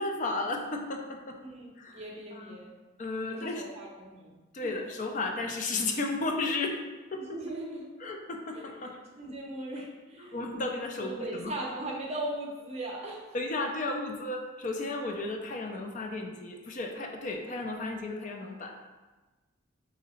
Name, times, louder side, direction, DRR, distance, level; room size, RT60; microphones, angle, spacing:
voice 1, 0.0-1.4 1.8-2.0 2.3-2.6 3.0-3.6 4.5-6.8 7.1-7.2 8.0-9.0 10.3-11.5 13.3-18.7, left 2 dB, 40° left, 3 dB, 0.5 m, -33 dB
voice 2, 1.4-2.7 3.2-4.3 4.6-4.7 7.2-7.9 8.5-10.6 11.0-13.3, right 1 dB, 35° right, -2 dB, 0.6 m, -39 dB
3.9 x 2.7 x 4.2 m, 1.2 s
head